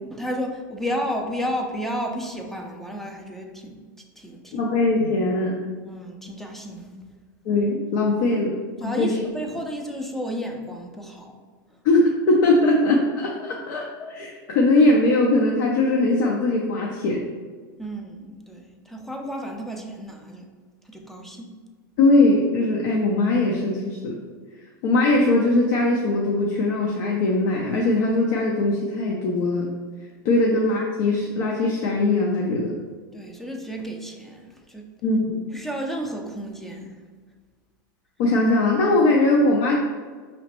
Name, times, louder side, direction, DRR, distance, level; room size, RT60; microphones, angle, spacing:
voice 1, 0.0-3.8 4.2-4.7 5.8-6.9 8.8-11.3 17.8-20.5 20.9-21.5 33.1-34.9 35.5-36.9, equal, ahead, 2 dB, 0.5 m, -32 dB
voice 2, 4.5-5.6 7.5-9.2 11.8-17.2 22.0-24.1 24.8-29.7 30.2-32.7 35.0-35.4 38.2-39.8, left 2 dB, 60° left, -2 dB, 0.6 m, -20 dB
4.9 x 3.1 x 2.9 m, 1.5 s
supercardioid pair, 130°, 11 cm